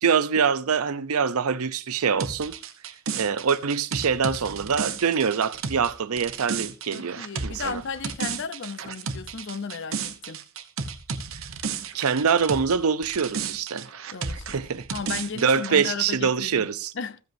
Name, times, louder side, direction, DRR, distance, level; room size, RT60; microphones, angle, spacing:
voice 1, 0.0-2.6 3.2-7.8 11.9-13.9 14.5-14.9 15.4-16.9, right 6 dB, 90° right, 0.6 m, -24 dB
sound 1, 2.2-12.8 13.0-15.9, right 5 dB, 70° right, 0.9 m, -33 dB
voice 2, 6.9-10.4 14.1-16.7 16.9-17.2, left 5 dB, 55° left, 0.6 m, -35 dB
15.0 x 7.8 x 2.6 m
head